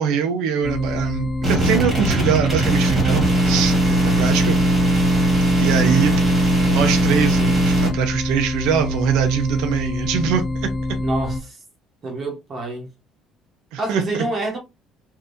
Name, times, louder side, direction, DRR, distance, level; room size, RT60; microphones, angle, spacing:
voice 1, 0.0-4.6 5.6-10.7 13.7-14.2, right 8 dB, 85° right, 0.6 m, -23 dB
sound 1, 0.6-11.4, left 2 dB, 15° left, 0.3 m, -26 dB
sound 2, 1.4-7.9, right 1 dB, 15° right, 1.6 m, -19 dB
voice 2, 11.0-11.6 12.0-12.9 13.8-14.6, right 2 dB, 35° right, 1.0 m, -27 dB
3.5 x 2.7 x 2.6 m
cardioid pair, 150°, 0 cm